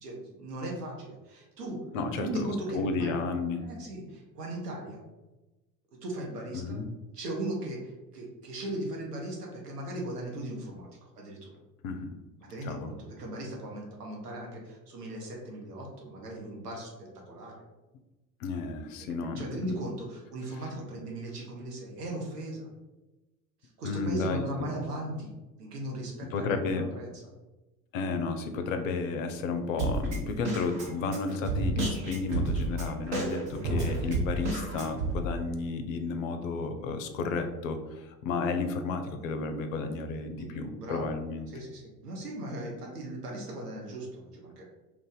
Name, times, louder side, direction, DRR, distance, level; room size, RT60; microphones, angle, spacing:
voice 1, 0.0-1.8 2.2-3.1 3.6-5.0 6.0-6.8 7.1-10.9 11.2-11.6 12.5-17.6 19.0-22.7 23.6-25.3 25.6-27.2 40.3-41.2 41.5-44.6, right 1 dB, 75° right, -1 dB, 0.9 m, -38 dB
voice 2, 1.9-3.6 6.5-6.9 11.8-12.1 12.6-12.9 18.4-19.6 23.8-24.4 26.3-26.9 27.9-41.5, left 4 dB, 55° left, 7 dB, 0.6 m, -32 dB
Drum kit, 29.8-35.1, right 2 dB, 60° right, 1.1 m, -31 dB
2.5 x 2.5 x 3.8 m, 1.1 s
figure-of-eight pair, 80°, 48 cm